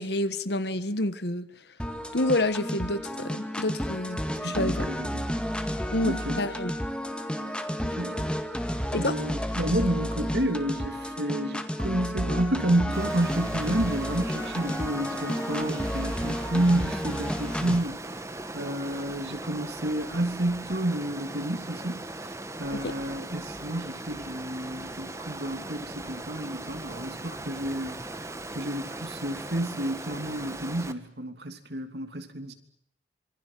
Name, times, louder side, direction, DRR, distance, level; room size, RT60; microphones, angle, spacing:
voice 1, 0.0-1.5 2.1-4.9 5.9-6.7 8.9-9.2 22.7-22.9, left 1 dB, 70° left, 1.6 m, -28 dB
sound 1, 1.8-17.8, equal, 5° left, 1.9 m, -31 dB
voice 2, 4.4-5.4 6.0-6.4 7.8-8.3 9.0-18.3 18.5-28.0 28.5-32.5, right 1 dB, 65° right, 3.0 m, -30 dB
Water, 12.9-30.9, right 2 dB, 15° right, 1.5 m, -39 dB
26.5 x 24.0 x 7.6 m
head